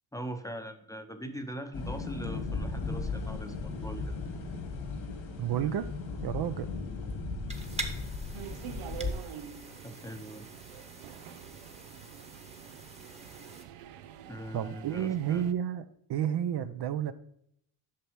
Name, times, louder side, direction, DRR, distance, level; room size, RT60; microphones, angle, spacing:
voice 1, 0.1-4.2 9.8-10.5 14.3-15.4, right 1 dB, 5° left, 7 dB, 0.7 m, -41 dB
sound 1, 1.7-9.1, left 4 dB, 75° left, 1.9 m, -36 dB
voice 2, 5.4-5.9 6.2-6.7 14.5-17.1, right 10 dB, 55° right, 11 dB, 0.6 m, -31 dB
sound 2, 7.5-13.7, right 2 dB, 15° right, 1.1 m, -45 dB
sound 3, 8.3-15.5, right 10 dB, 90° right, 0.7 m, -46 dB
8.5 x 5.9 x 3.1 m, 0.69 s
cardioid pair, 90°, 50 cm